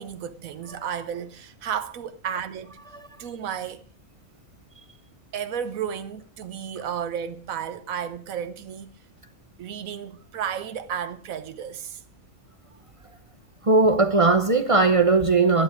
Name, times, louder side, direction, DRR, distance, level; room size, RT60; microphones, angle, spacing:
voice 1, 0.0-2.8 3.2-3.9 5.3-9.0 9.6-12.0, right 8 dB, 90° right, 1.3 m, -33 dB
voice 2, 13.6-15.6, right 3 dB, 30° right, 0.7 m, -18 dB
12.0 x 11.5 x 4.9 m
omnidirectional pair, 1.4 m